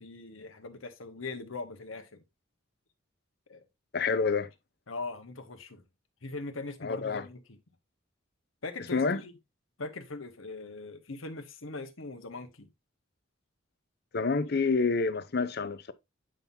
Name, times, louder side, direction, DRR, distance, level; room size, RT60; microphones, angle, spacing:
voice 1, 0.0-2.2 3.5-3.6 4.9-5.8 6.2-7.6 8.6-9.3 9.8-12.7, left 3 dB, 85° left, 1.3 m, -41 dB
voice 2, 3.9-4.5 6.8-7.2 8.9-9.2 14.1-15.9, left 4 dB, 55° left, 0.7 m, -28 dB
8.9 x 5.7 x 2.7 m
head